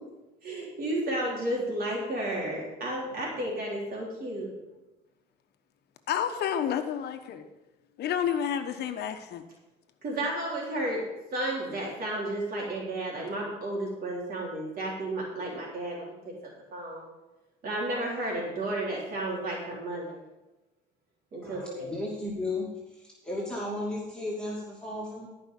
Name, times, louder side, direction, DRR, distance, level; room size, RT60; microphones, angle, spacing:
voice 1, 0.4-4.5 10.0-11.0 11.3-16.2 16.7-17.1 17.6-20.2 21.3-21.9, right 1 dB, 55° right, -4 dB, 3.6 m, -32 dB
voice 2, 6.1-7.4 8.0-9.4, left 9 dB, 65° left, 7 dB, 1.1 m, -30 dB
voice 3, 21.4-22.7 22.9-25.3, left 2 dB, 5° left, -6 dB, 2.6 m, -34 dB
14.0 x 5.5 x 5.3 m, 1.0 s
cardioid pair, 90°, 18 cm